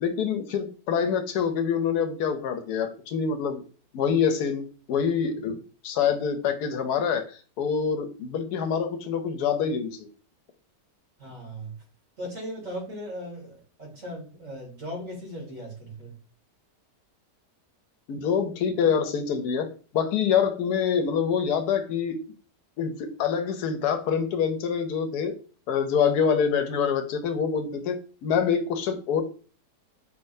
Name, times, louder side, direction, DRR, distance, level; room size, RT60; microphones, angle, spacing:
voice 1, 0.0-3.6 3.9-5.6 5.8-7.2 7.6-10.1 18.1-19.7 19.9-22.2 22.8-25.4 25.7-29.2, left 7 dB, 80° left, 8 dB, 1.1 m, -26 dB
voice 2, 11.2-11.8 12.2-16.1, equal, 55° right, -3 dB, 2.5 m, -38 dB
4.4 x 3.7 x 2.6 m, 0.39 s
omnidirectional pair, 1.7 m